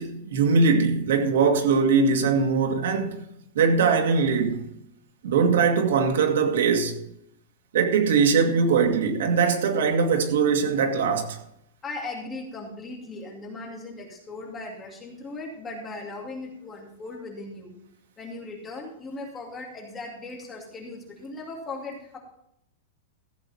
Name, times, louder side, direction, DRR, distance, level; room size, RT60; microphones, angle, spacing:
voice 1, 0.0-3.2 3.6-4.7 5.2-7.0 7.7-11.4, right 5 dB, 75° right, 2.1 m, -21 dB
voice 2, 11.8-17.7 18.2-22.2, left 2 dB, 10° left, 2.5 m, -38 dB
15.0 x 8.2 x 4.3 m
supercardioid pair, 180°, 0 cm